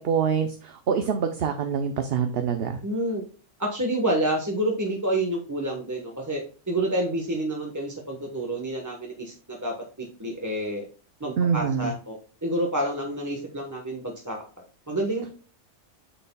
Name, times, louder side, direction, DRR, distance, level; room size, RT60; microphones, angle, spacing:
voice 1, 0.0-2.8 11.4-11.9, right 7 dB, 55° right, 7 dB, 0.9 m, -25 dB
voice 2, 2.8-3.2 3.6-6.4 6.7-9.3 9.6-10.9 11.2-14.4 14.9-15.3, right 1 dB, 15° right, -1 dB, 1.1 m, -28 dB
9.0 x 6.8 x 2.2 m, 0.37 s
omnidirectional pair, 1.3 m